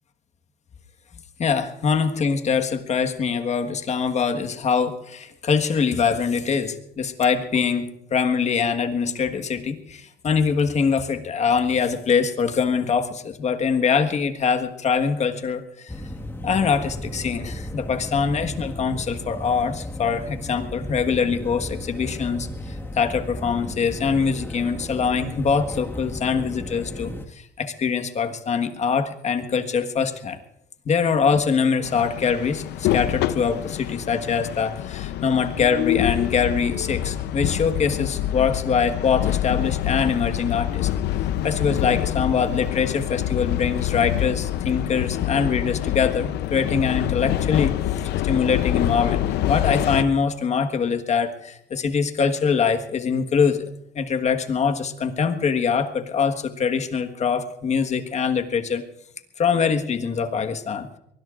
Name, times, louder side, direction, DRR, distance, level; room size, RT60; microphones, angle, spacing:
voice 1, 1.4-15.9 16.4-30.4 30.8-40.9 41.4-47.8 48.2-53.7 53.9-58.8 59.4-61.0, left 6 dB, 40° left, 7 dB, 1.5 m, -23 dB
sound 1, 15.9-27.3, left 1 dB, 15° left, 1.7 m, -35 dB
sound 2, 31.8-50.0, left 12 dB, 80° left, 0.7 m, -26 dB
23.5 x 20.0 x 2.5 m, 0.78 s
cardioid pair, 110°, 17 cm